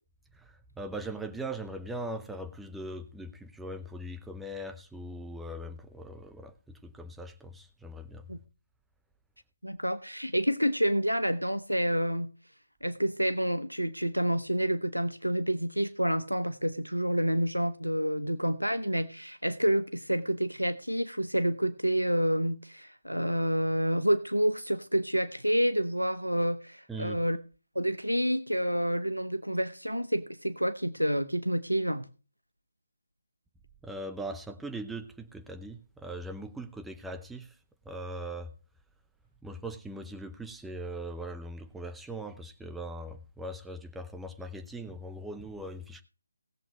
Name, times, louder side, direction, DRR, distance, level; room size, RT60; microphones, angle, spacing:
voice 1, 0.3-8.4 26.9-27.2 33.8-37.6 37.8-38.5 39.4-46.0, right 1 dB, 5° right, 0.6 m, -40 dB
voice 2, 9.6-12.3 12.8-27.4 27.7-32.1, equal, 90° right, 0.9 m, -28 dB
18.5 x 7.4 x 3.0 m
figure-of-eight pair, 150°, 0 cm